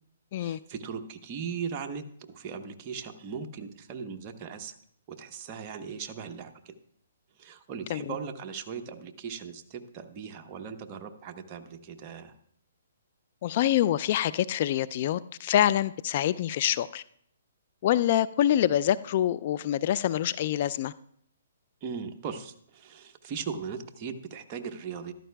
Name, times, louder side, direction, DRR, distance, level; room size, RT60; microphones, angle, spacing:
voice 1, 0.4-2.0 2.3-4.8 5.1-6.7 7.4-12.3 21.8-25.1, right 6 dB, 30° right, 4 dB, 0.9 m, -38 dB
voice 2, 13.4-17.0 17.8-20.9, left 11 dB, 45° left, 16 dB, 0.3 m, -26 dB
14.0 x 12.0 x 2.3 m, 0.64 s
hypercardioid pair, 145°, 0 cm